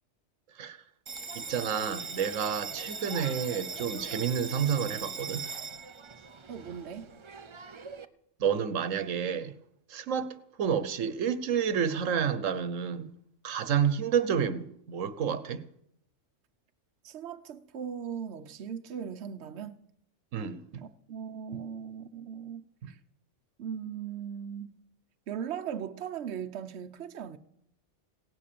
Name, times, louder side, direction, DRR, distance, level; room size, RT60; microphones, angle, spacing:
Bell, 1.1-8.1, right 5 dB, 35° right, 0.5 m, -40 dB
voice 1, 1.3-5.4 8.4-9.5 9.9-13.1 13.4-15.6 20.3-20.8 22.8-22.9, right 7 dB, 90° right, 1.3 m, -30 dB
voice 2, 6.5-7.1 17.0-19.8 20.8-23.0 23.6-24.7 25.3-27.4, right 8 dB, 65° right, 1.0 m, -38 dB
17.0 x 10.0 x 6.8 m
omnidirectional pair, 1.3 m